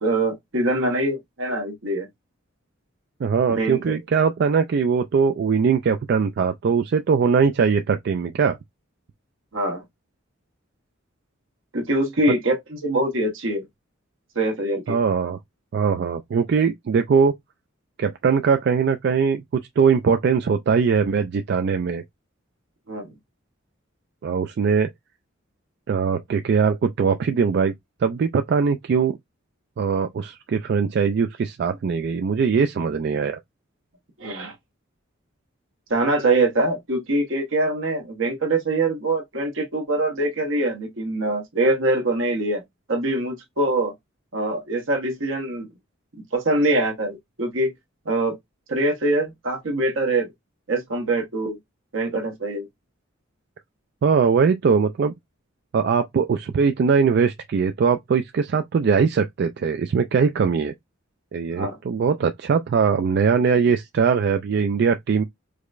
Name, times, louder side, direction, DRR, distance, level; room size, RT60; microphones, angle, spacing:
voice 1, 0.0-2.1 3.5-3.9 9.5-9.8 11.7-13.6 14.3-15.0 22.9-23.1 34.2-34.5 35.9-42.6 42.9-43.9 44.3-45.7 46.3-47.7 48.0-48.4 48.7-50.3 50.7-51.6 51.9-52.7 61.5-61.8, right 2 dB, 75° right, 1.1 m, -23 dB
voice 2, 3.2-8.6 14.9-15.4 15.7-17.3 18.0-19.4 19.8-22.0 24.2-24.9 25.9-27.7 28.0-29.2 29.8-33.4 54.0-55.1 55.7-60.7 61.3-65.2, right 6 dB, 55° right, 0.3 m, -21 dB
4.7 x 2.1 x 2.4 m
head